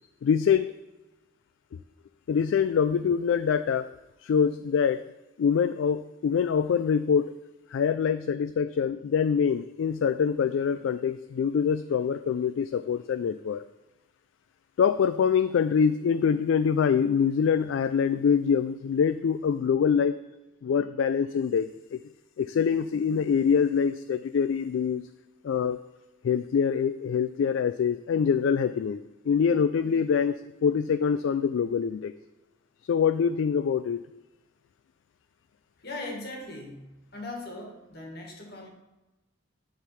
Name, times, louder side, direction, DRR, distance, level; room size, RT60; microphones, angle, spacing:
voice 1, 0.2-0.7 2.3-3.9 4.2-5.0 5.4-7.3 7.7-13.6 14.8-20.2 20.6-22.0 22.4-25.0 25.4-25.8 26.2-30.3 30.6-32.1 32.9-34.0, left 7 dB, 70° left, 12 dB, 0.3 m, -25 dB
voice 2, 35.8-38.7, left 2 dB, 55° left, 1 dB, 1.9 m, -39 dB
9.7 x 3.9 x 5.8 m, 1.1 s
head